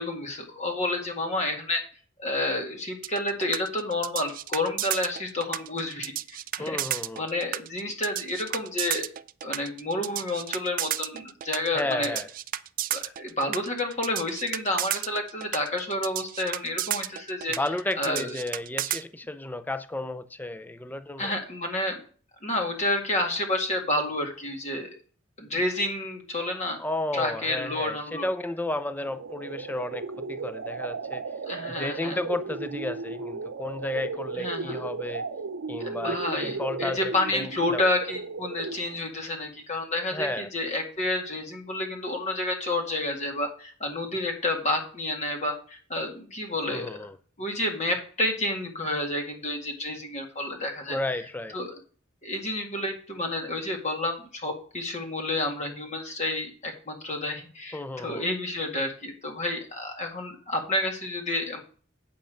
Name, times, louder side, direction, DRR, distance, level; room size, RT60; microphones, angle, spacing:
voice 1, 0.0-1.8 2.2-6.8 7.2-9.1 9.4-12.2 12.9-17.6 18.0-18.4 21.2-22.0 22.4-24.9 25.4-26.8 27.1-28.3 31.4-32.2 34.4-34.8 35.8-46.9 47.4-51.0 51.5-51.7 52.2-61.6, left 1 dB, 35° left, 2.0 m, -30 dB
sound 1, 3.0-19.0, right 13 dB, 45° right, 0.4 m, -32 dB
voice 2, 6.6-7.3 11.7-12.3 17.6-21.3 26.8-31.2 31.7-35.2 35.7-37.8 40.1-40.5 46.7-47.2 50.9-51.6 57.7-58.2, left 2 dB, 10° left, 0.5 m, -33 dB
sound 2, 29.0-39.0, right 4 dB, 85° right, 0.7 m, -35 dB
8.6 x 5.5 x 6.4 m
head